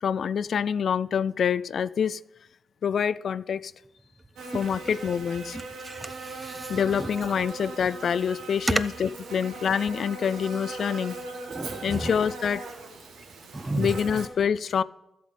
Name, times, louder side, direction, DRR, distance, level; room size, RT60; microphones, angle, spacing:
voice 1, 0.0-2.2 2.8-3.7 4.5-5.6 6.7-11.2 11.8-12.6 13.8-14.8, left 7 dB, 65° left, 17 dB, 0.3 m, -26 dB
Buzz, 4.4-14.3, right 3 dB, 80° right, 1.6 m, -39 dB
voice 2, 5.8-7.1 11.5-12.1 13.5-13.9, right 2 dB, 25° right, 13 dB, 0.7 m, -34 dB
13.0 x 7.6 x 5.1 m, 0.89 s
supercardioid pair, 45°, 0 cm